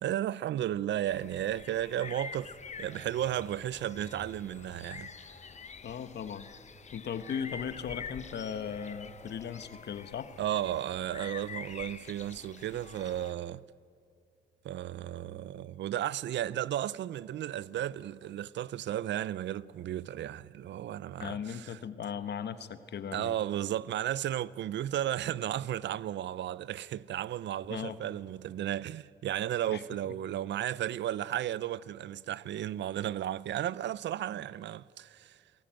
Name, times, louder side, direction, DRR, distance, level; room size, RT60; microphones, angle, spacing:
voice 1, 0.0-2.5 2.8-5.1 10.4-13.6 14.6-21.8 23.1-35.4, right 12 dB, 65° right, 0.5 m, -34 dB
sound 1, 1.1-13.3, left 5 dB, 35° left, 1.2 m, -47 dB
sound 2, 2.1-6.8 7.6-11.0, left 2 dB, 10° left, 3.4 m, -57 dB
voice 2, 5.8-6.5 6.9-10.3 21.2-23.4 27.7-28.0 29.7-29.8, left 7 dB, 60° left, 1.4 m, -37 dB
28.5 x 18.5 x 9.0 m
cardioid pair, 90°, 20 cm